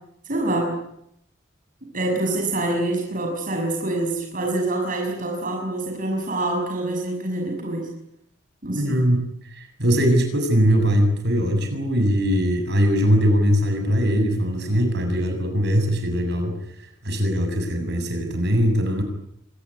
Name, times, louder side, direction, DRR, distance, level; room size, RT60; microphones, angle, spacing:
voice 1, 0.3-0.8 1.9-7.9 8.6-9.0, right 2 dB, 45° right, 1 dB, 6.2 m, -26 dB
voice 2, 8.7-16.6 17.0-19.0, equal, 60° right, 5 dB, 7.3 m, -21 dB
25.5 x 20.0 x 9.8 m, 0.75 s
head